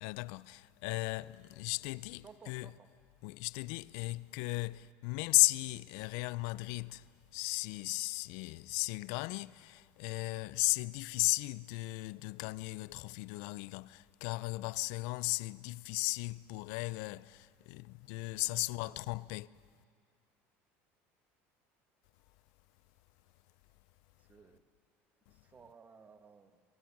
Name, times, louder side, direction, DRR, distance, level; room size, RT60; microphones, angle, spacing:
voice 1, 0.0-2.7 3.2-19.5, left 23 dB, 75° left, 0.4 m, -35 dB
voice 2, 2.2-2.9 18.4-19.2 24.2-24.6 25.3-26.6, right 5 dB, 25° right, 1.5 m, -58 dB
23.0 x 23.0 x 6.0 m
supercardioid pair, 115°, 6 cm